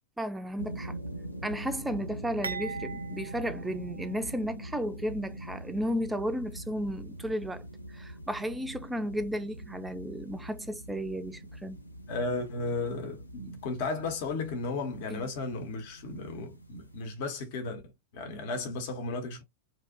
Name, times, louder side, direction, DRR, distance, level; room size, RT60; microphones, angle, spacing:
voice 1, 0.2-1.0 1.4-7.6 7.9-11.8 15.1-15.3, equal, 5° right, 0.3 m, -34 dB
sound 1, 0.6-17.1, right 1 dB, 85° left, 0.4 m, -43 dB
sound 2, 2.4-4.6 5.0-5.1 6.0-6.1, right 5 dB, 80° right, 0.4 m, -41 dB
voice 2, 12.1-17.8 18.1-19.4, left 3 dB, 50° left, 0.7 m, -34 dB
2.6 x 2.0 x 2.5 m
figure-of-eight pair, 90°, 0 cm